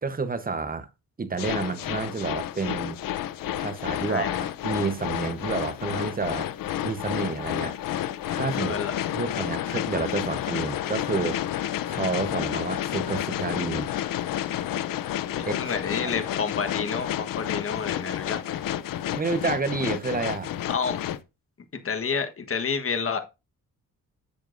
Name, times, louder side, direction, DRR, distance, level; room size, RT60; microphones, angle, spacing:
voice 1, 0.0-0.9 1.2-3.0 3.6-4.2 4.6-6.5 6.8-7.8 8.3-13.9 15.5-15.6 16.0-16.1 19.1-20.5, right 4 dB, 25° right, 1.0 m, -30 dB
sound 1, 1.4-21.2, left 12 dB, 85° left, 0.6 m, -30 dB
voice 2, 4.0-4.4 8.6-8.9 15.3-18.4 20.6-21.0 21.7-23.2, left 5 dB, 40° left, 1.3 m, -29 dB
10.5 x 7.3 x 2.6 m
cardioid pair, 95°, 33 cm